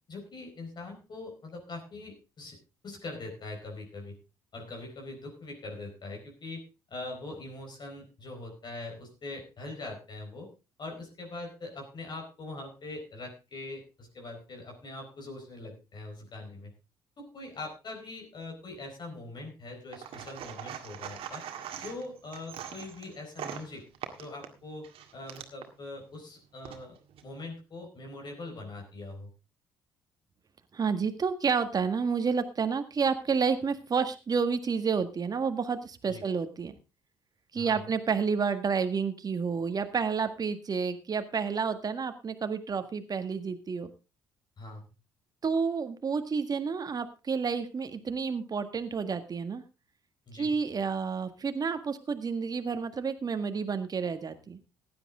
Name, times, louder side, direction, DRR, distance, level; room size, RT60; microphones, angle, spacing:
voice 1, 0.1-2.6 2.8-4.2 4.5-6.6 6.9-10.5 10.8-16.7 17.2-21.4 21.8-23.8 24.2-24.9 25.1-27.0 27.2-29.3 36.1-36.2 37.5-37.8 44.6-44.9 50.3-50.6, left 2 dB, 45° left, 2 dB, 4.5 m, -42 dB
sound 1, 19.9-25.7 26.4-27.3, right 9 dB, 60° right, 1.9 m, -42 dB
voice 2, 30.7-36.7 37.5-43.9 45.4-49.6 50.3-54.6, right 5 dB, 35° right, 9 dB, 1.7 m, -30 dB
15.5 x 10.5 x 3.6 m, 0.29 s
hypercardioid pair, 50°, 11 cm